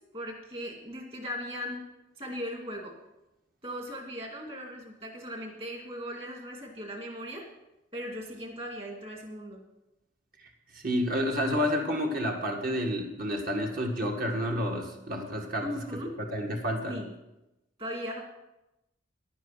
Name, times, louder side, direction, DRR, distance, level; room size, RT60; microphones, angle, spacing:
voice 1, 0.1-1.8 2.2-2.9 3.6-7.5 7.9-9.6 15.6-16.1 16.9-17.1 17.8-18.2, equal, 30° right, 1 dB, 2.3 m, -38 dB
voice 2, 10.7-15.7 16.3-17.0, equal, 45° right, 2 dB, 1.9 m, -29 dB
11.0 x 9.4 x 5.7 m, 0.94 s
head